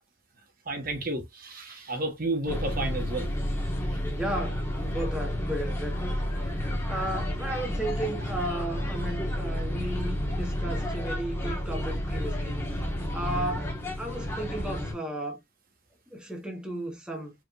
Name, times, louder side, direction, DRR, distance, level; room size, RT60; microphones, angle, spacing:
voice 1, 0.7-3.3, right 2 dB, 45° right, 1.4 m, -31 dB
sound 1, 2.5-14.9, equal, 15° left, 1.6 m, -31 dB
voice 2, 4.1-6.0 6.4-6.6 6.9-12.6 13.1-15.4 16.1-17.3, right 1 dB, 5° right, 1.5 m, -34 dB
4.9 x 3.7 x 2.5 m
head